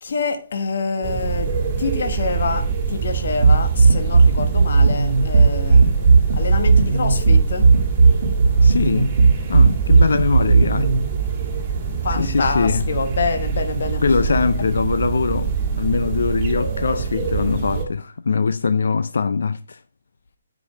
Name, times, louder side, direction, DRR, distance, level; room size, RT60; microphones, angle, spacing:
voice 1, 0.0-1.5 1.8-5.9 6.3-7.7 12.0-14.0, left 4 dB, 55° left, 1.2 m, -26 dB
sound 1, 1.0-17.9, right 6 dB, 20° right, 1.7 m, -25 dB
sound 2, 3.4-11.0, right 4 dB, 70° right, 1.4 m, -14 dB
voice 2, 8.6-9.1 9.5-10.9 12.2-12.8 14.0-19.8, left 4 dB, 70° left, 0.5 m, -22 dB
9.5 x 5.2 x 5.4 m
hypercardioid pair, 170°, 0 cm